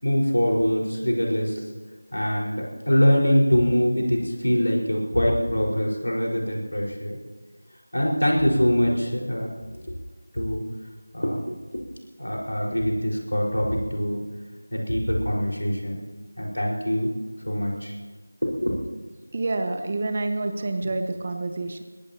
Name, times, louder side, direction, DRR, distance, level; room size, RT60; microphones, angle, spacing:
voice 1, 0.0-1.6 2.1-7.2 7.9-9.5 9.8-9.9 10.3-10.6 11.1-11.8 12.2-14.2 14.7-16.0 16.4-17.1 17.4-17.9 18.4-18.8 20.8-20.9, equal, 75° left, -2 dB, 5.0 m, -23 dB
voice 2, 19.3-21.8, right 2 dB, 30° right, 7 dB, 1.0 m, -28 dB
22.0 x 17.5 x 3.0 m, 1.4 s
figure-of-eight pair, 170°, 0 cm